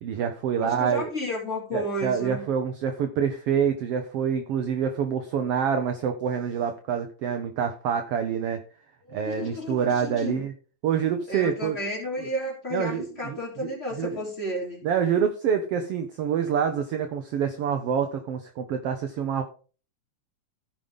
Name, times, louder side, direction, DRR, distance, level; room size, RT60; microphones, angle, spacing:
voice 1, 0.0-1.1 1.7-8.6 9.1-10.5 10.8-11.8 12.2-12.3 12.7-14.2 14.8-19.4, right 7 dB, 70° right, 6 dB, 1.6 m, -27 dB
voice 2, 0.5-2.5 9.1-10.3 11.3-14.8, equal, 20° left, -4 dB, 3.6 m, -32 dB
15.5 x 5.5 x 3.7 m, 0.39 s
omnidirectional pair, 3.3 m